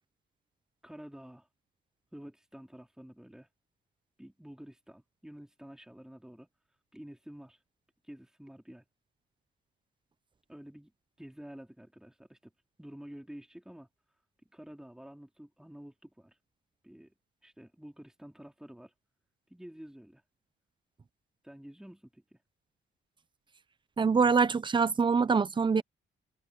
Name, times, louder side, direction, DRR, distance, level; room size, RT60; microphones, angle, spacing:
voice 1, 0.8-1.5 2.1-3.5 4.2-6.5 6.9-7.6 8.0-8.8 10.5-10.9 11.2-12.5 12.8-13.9 14.5-16.4 16.8-17.1 17.4-18.9 19.5-20.2 21.4-22.4, equal, 5° right, 4.1 m, -49 dB
voice 2, 24.0-25.8, right 5 dB, 25° right, 0.8 m, -24 dB
cardioid pair, 110°, 20 cm